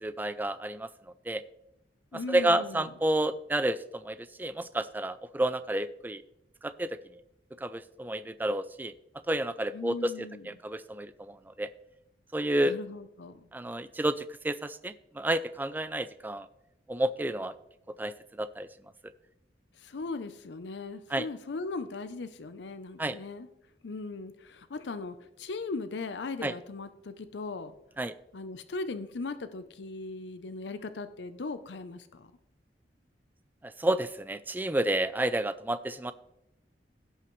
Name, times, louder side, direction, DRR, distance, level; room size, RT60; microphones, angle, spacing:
voice 1, 0.0-0.9 1.3-1.4 2.3-6.2 6.6-7.0 7.6-8.9 9.3-11.7 12.3-12.7 13.5-16.5 16.9-17.6 18.0-18.7 21.1-21.3 23.0-23.2 26.4-26.5 28.0-28.1 33.6-36.1, right 1 dB, 10° right, 13 dB, 0.3 m, -30 dB
voice 2, 2.1-2.9 9.7-10.5 12.6-13.5 19.8-23.5 23.8-27.7 28.3-32.3, left 3 dB, 75° left, 11 dB, 0.6 m, -38 dB
16.5 x 5.8 x 3.1 m, 0.84 s
head